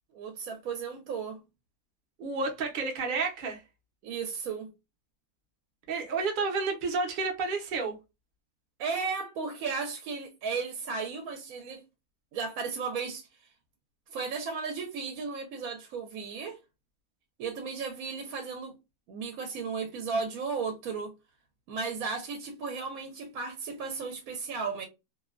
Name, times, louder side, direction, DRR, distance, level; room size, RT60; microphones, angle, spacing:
voice 1, 0.1-1.4 4.0-4.7 8.8-11.8 12.3-13.3 14.1-16.6 17.4-18.8 19.1-21.1 21.7-24.8, right 5 dB, 75° right, 1.0 m, -35 dB
voice 2, 2.2-3.6 5.9-8.0, right 4 dB, 50° right, 0.6 m, -30 dB
2.6 x 2.1 x 2.3 m
omnidirectional pair, 1.5 m